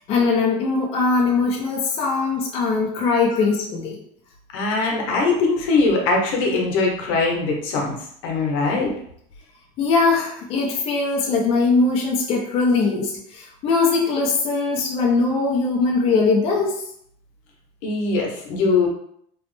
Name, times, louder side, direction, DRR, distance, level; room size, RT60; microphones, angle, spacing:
voice 1, 0.1-4.0 9.8-16.8, left 4 dB, 35° left, -1 dB, 0.5 m, -21 dB
voice 2, 4.5-8.0 8.2-8.9 17.8-18.9, left 3 dB, 85° left, 0 dB, 0.8 m, -21 dB
3.0 x 2.0 x 3.1 m, 0.67 s
cardioid pair, 165°, 17 cm